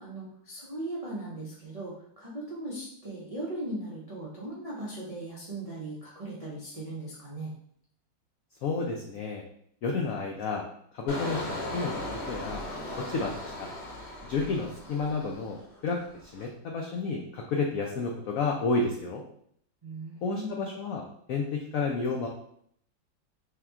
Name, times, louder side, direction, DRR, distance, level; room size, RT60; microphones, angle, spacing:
voice 1, 0.0-7.5 19.8-20.5, right 2 dB, 50° right, -7 dB, 0.4 m, -38 dB
voice 2, 8.6-9.4 9.8-10.6 10.9-12.6 13.0-13.7 14.2-15.6 15.8-19.2 20.2-21.0 21.3-22.3, left 4 dB, 75° left, 0 dB, 0.8 m, -31 dB
Engine, 11.1-15.7 16.1-16.4, left 1 dB, 45° left, 1.0 m, -37 dB
3.5 x 2.8 x 3.5 m, 0.66 s
omnidirectional pair, 2.0 m